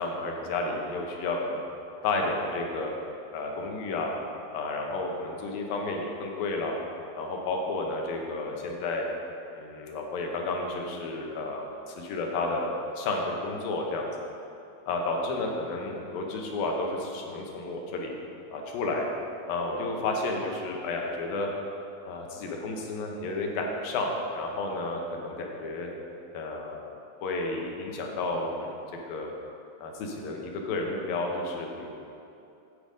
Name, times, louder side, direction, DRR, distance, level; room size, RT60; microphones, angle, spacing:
voice 1, 0.0-1.6 2.0-2.9 3.3-4.1 4.5-6.8 7.2-9.0 9.6-14.1 14.9-18.1 18.5-19.1 19.5-21.5 22.1-25.9 26.3-26.8 27.2-28.8 29.1-29.3 29.8-31.9, left 2 dB, 75° left, 1 dB, 2.7 m, -31 dB
10.0 x 8.2 x 5.2 m, 2.8 s
omnidirectional pair, 4.4 m